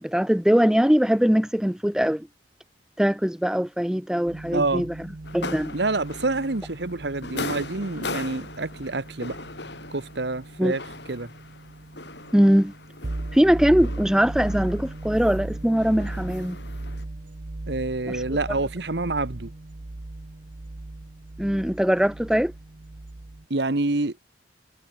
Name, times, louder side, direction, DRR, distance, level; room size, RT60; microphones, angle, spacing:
voice 1, 0.0-2.3 3.0-4.9 5.3-5.7 10.6-10.7 12.3-12.7 13.3-16.6 18.1-18.2 21.4-22.5, equal, 5° right, 0.5 m, -21 dB
sound 1, 4.3-23.4, right 2 dB, 45° right, 0.8 m, -37 dB
voice 2, 4.5-4.9 5.7-9.4 9.9-10.8 11.1-11.3 17.7-19.5 23.5-24.2, right 2 dB, 65° right, 1.3 m, -27 dB
sound 2, 5.2-17.0, left 3 dB, 65° left, 5.7 m, -39 dB
head